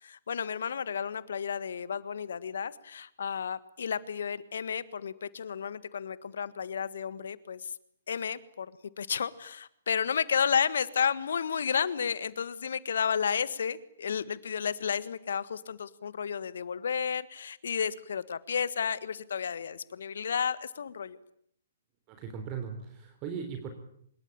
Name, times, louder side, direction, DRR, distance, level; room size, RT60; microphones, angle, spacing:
voice 1, 0.0-7.7 8.1-8.7 9.0-21.2, left 7 dB, 65° left, 16 dB, 1.6 m, -32 dB
voice 2, 22.1-23.7, right 6 dB, 30° right, 6 dB, 3.6 m, -38 dB
25.0 x 21.5 x 8.7 m, 0.69 s
figure-of-eight pair, 125°, 0 cm